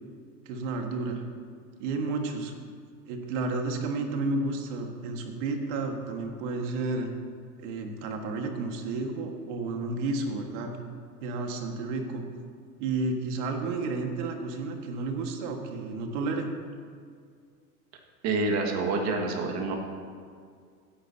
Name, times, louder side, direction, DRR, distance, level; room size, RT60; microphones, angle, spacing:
voice 1, 0.4-1.2 1.8-2.5 3.0-7.1 7.6-10.8 11.2-12.2 12.8-16.5, right 3 dB, 55° right, 4 dB, 1.7 m, -31 dB
voice 2, 18.2-19.8, right 3 dB, 35° right, 2 dB, 1.8 m, -27 dB
16.5 x 10.0 x 2.8 m, 2.1 s
supercardioid pair, 130°, 45 cm